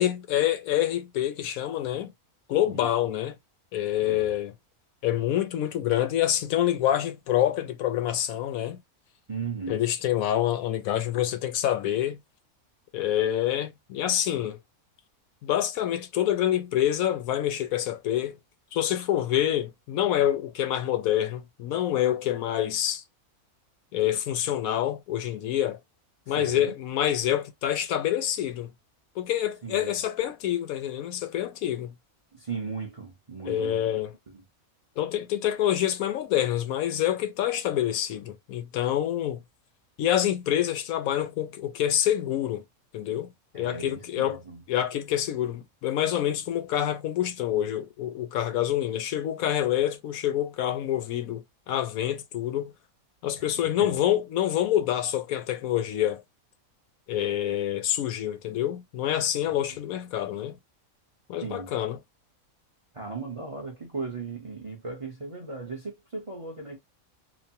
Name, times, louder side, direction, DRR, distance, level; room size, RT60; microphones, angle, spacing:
voice 1, 0.0-2.1 2.5-3.3 3.7-4.5 5.0-8.8 9.7-12.2 12.9-14.6 15.4-18.4 18.7-23.0 23.9-25.8 26.3-28.7 29.2-31.9 33.5-34.1 35.0-39.4 40.0-42.6 42.9-43.3 43.5-44.4 44.7-52.7 53.2-56.2 57.1-60.6 61.3-62.0, left 11 dB, 80° left, 1.0 m, -27 dB
voice 2, 9.3-9.8 26.3-26.7 29.6-30.0 32.3-33.8 34.3-34.4 43.5-44.6 53.3-53.5 53.8-54.0 61.4-61.7 62.9-66.8, right 4 dB, 30° right, 0.6 m, -37 dB
3.1 x 2.1 x 2.6 m
omnidirectional pair, 1.5 m